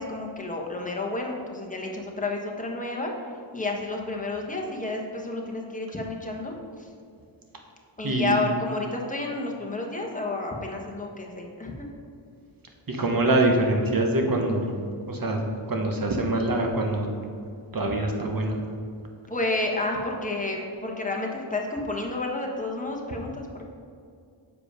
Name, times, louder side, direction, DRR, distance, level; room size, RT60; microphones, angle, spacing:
voice 1, 0.0-3.1 3.5-6.9 8.0-11.9 19.3-23.6, left 2 dB, 15° left, 0 dB, 1.3 m, -30 dB
voice 2, 12.9-14.7 15.1-15.4 15.7-17.1 17.7-18.6, right 2 dB, 45° right, 2 dB, 1.3 m, -24 dB
7.2 x 4.8 x 5.0 m, 2.3 s
cardioid pair, 55°, 49 cm